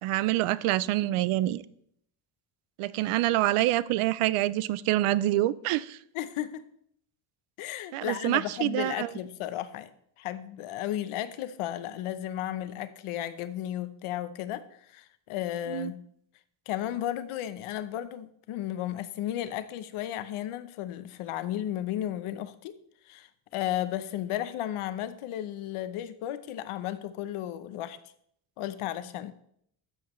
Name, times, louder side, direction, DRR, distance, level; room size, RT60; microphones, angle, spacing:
voice 1, 0.0-1.6 2.8-6.0 7.9-9.1 15.7-15.9, right 15 dB, 90° right, 19 dB, 0.6 m, -26 dB
voice 2, 6.1-6.6 7.6-9.9 10.2-14.6 14.9-16.0 16.7-22.7 23.1-28.0 28.6-29.3, left 12 dB, 85° left, 13 dB, 0.8 m, -34 dB
12.0 x 7.2 x 3.1 m, 0.69 s
cardioid pair, 165°, 49 cm